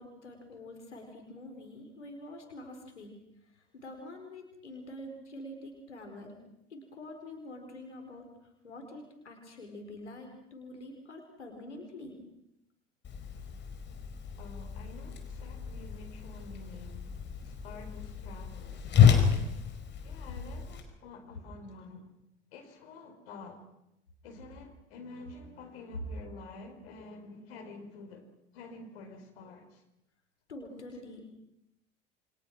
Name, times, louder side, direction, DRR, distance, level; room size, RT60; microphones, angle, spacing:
voice 1, 0.0-3.1 3.7-6.4 6.7-8.2 8.6-12.2 30.5-31.3, left 1 dB, 75° left, 4.7 m, -46 dB
Whoosh swoosh swish, 13.0-20.8, left 7 dB, 30° left, 5.1 m, -29 dB
voice 2, 14.4-17.1 17.4-19.5 20.0-22.1 22.5-23.6 24.2-28.3 28.5-29.8, left 3 dB, 60° left, 5.0 m, -49 dB
29.0 x 24.5 x 6.2 m
figure-of-eight pair, 70°, 35 cm